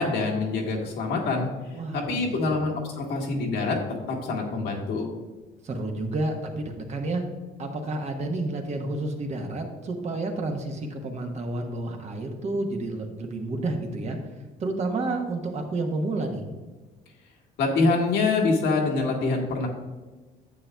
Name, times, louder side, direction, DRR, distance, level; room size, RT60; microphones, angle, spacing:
voice 1, 0.0-1.5 1.9-3.8 4.1-5.1 17.6-19.7, left 3 dB, 75° left, 0 dB, 1.6 m, -25 dB
voice 2, 1.7-2.6 5.6-7.2 7.6-14.2 14.6-16.4, right 2 dB, 40° right, 3 dB, 1.1 m, -30 dB
9.7 x 7.3 x 2.3 m, 1.2 s
cardioid pair, 110°, 17 cm